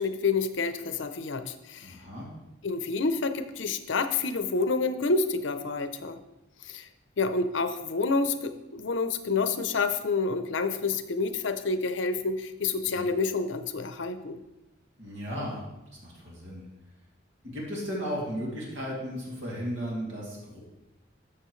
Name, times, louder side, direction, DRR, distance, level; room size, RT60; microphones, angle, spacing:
voice 1, 0.0-1.9 2.6-6.2 6.6-6.9 7.2-14.4, left 4 dB, 75° left, 10 dB, 0.6 m, -28 dB
voice 2, 1.8-2.3 12.9-13.0 15.0-15.6 16.0-16.6 17.5-20.6, equal, 80° right, -4 dB, 2.6 m, -35 dB
12.5 x 6.9 x 3.2 m, 0.96 s
head